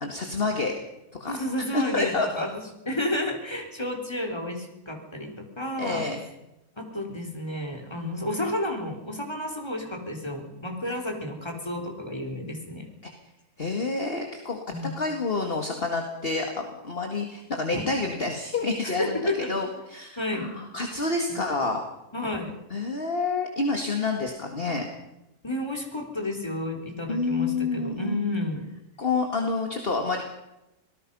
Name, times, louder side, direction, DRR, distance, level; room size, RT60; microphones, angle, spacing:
voice 1, 0.0-0.7 1.2-1.3 1.7-2.5 5.8-6.2 13.6-14.6 15.0-21.8 22.7-24.9 27.1-28.2 29.0-30.2, left 3 dB, 40° left, 4 dB, 2.2 m, -28 dB
voice 2, 1.3-2.5 2.9-6.1 6.8-12.9 14.7-15.0 17.7-17.8 18.8-19.5 20.2-20.5 22.1-22.6 25.4-28.6, left 1 dB, 15° left, 3 dB, 3.8 m, -31 dB
25.5 x 18.5 x 5.5 m, 0.91 s
omnidirectional pair, 1.6 m